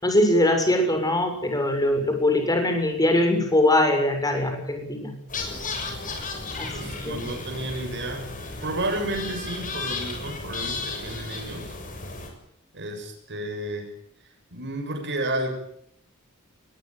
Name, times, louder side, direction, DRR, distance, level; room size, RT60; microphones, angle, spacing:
voice 1, 0.0-5.1 6.6-6.7 7.0-7.2, left 1 dB, 15° left, 5 dB, 7.1 m, -22 dB
sound 1, 5.3-12.3, left 3 dB, 40° left, 6.9 m, -34 dB
voice 2, 6.6-8.3 8.6-11.8 12.7-13.9 14.2-15.6, right 1 dB, 55° right, 4 dB, 7.3 m, -32 dB
21.5 x 21.0 x 9.4 m, 0.72 s
head